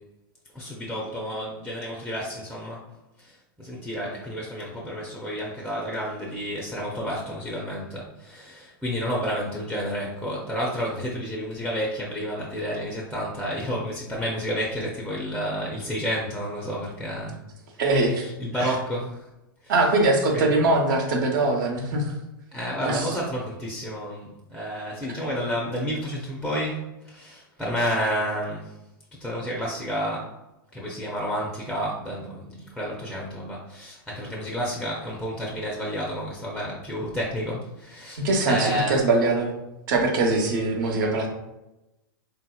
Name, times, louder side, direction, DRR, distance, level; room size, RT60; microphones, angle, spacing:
voice 1, 0.5-2.8 3.2-17.4 17.9-19.3 19.6-19.7 20.3-20.6 22.5-28.7 29.2-30.3 30.7-39.1, equal, ahead, -3 dB, 0.5 m, -30 dB
voice 2, 17.8-18.2 18.6-18.7 19.7-22.0 22.8-23.1 25.1-25.2 38.2-39.5 39.9-41.3, right 2 dB, 60° right, 1 dB, 0.9 m, -22 dB
3.6 x 2.8 x 2.3 m, 0.94 s
hypercardioid pair, 120°, 12 cm